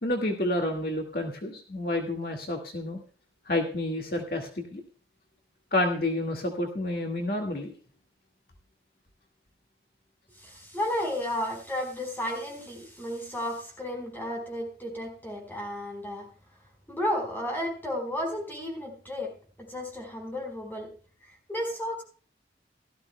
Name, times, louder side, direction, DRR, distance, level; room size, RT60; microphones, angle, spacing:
voice 1, 0.0-3.0 3.5-4.8 5.7-7.7, left 1 dB, 55° left, 2 dB, 1.9 m, -29 dB
voice 2, 10.4-16.3 16.9-19.3 19.6-20.9 21.5-22.0, left 1 dB, 10° left, 1 dB, 4.5 m, -33 dB
17.5 x 13.5 x 2.2 m, 0.39 s
head